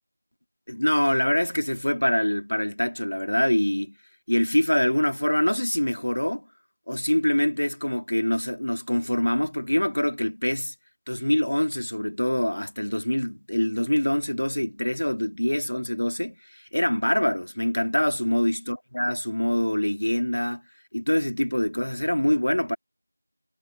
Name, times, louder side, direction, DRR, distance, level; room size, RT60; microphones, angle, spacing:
voice 1, 0.7-3.9 4.3-6.5 6.9-10.7 11.1-20.6 20.9-22.8, left 1 dB, 70° left, 2.2 m, -25 dB
figure-of-eight pair, 175°, 0 cm